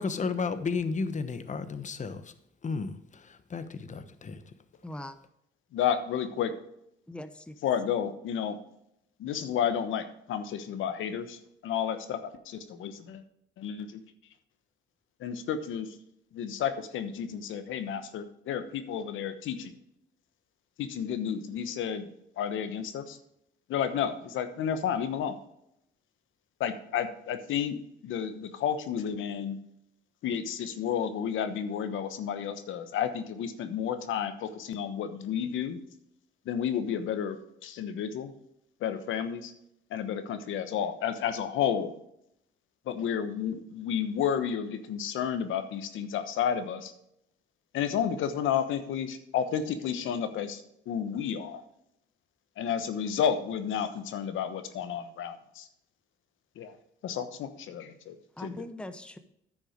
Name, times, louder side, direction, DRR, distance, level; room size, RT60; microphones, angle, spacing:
voice 1, 0.0-2.3 2.6-4.5, left 4 dB, 40° left, 11 dB, 1.1 m, -33 dB
voice 2, 4.8-5.1 7.1-7.5 58.4-59.2, left 1 dB, 5° left, 9 dB, 0.8 m, -41 dB
voice 3, 5.7-6.5 7.6-8.6 9.2-12.2 12.5-13.2 13.6-14.0 15.2-15.9 16.3-19.7 20.8-22.1 22.4-23.2 23.7-25.4 26.6-27.8 28.0-29.6 30.2-35.8 36.5-37.4 37.6-38.3 38.8-39.5 39.9-41.9 42.9-46.9 47.7-50.6 50.9-51.6 52.6-55.7 56.6-56.7 57.0-58.6, left 8 dB, 80° left, 9 dB, 1.1 m, -31 dB
10.0 x 6.3 x 5.0 m, 0.76 s
cardioid pair, 90°, 20 cm